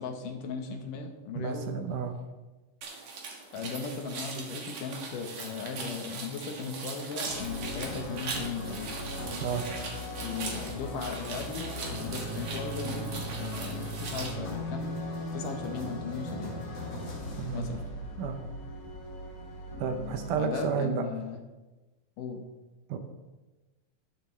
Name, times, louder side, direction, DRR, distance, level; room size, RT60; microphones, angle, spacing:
voice 1, 0.0-1.7 3.5-8.9 10.2-14.9 15.3-16.5 17.5-17.8 20.4-21.4 22.2-22.4, left 5 dB, 70° left, 4 dB, 2.4 m, -37 dB
voice 2, 1.4-2.1 9.4-9.6 17.4-17.8 18.2-18.4 19.8-21.0 22.9-23.0, right 6 dB, 75° right, 6 dB, 2.2 m, -31 dB
sound 1, 2.8-14.3, right 4 dB, 55° right, 2.3 m, -40 dB
sound 2, 7.3-20.3, left 1 dB, 50° left, 2.5 m, -38 dB
10.5 x 10.5 x 3.2 m, 1.1 s
omnidirectional pair, 4.1 m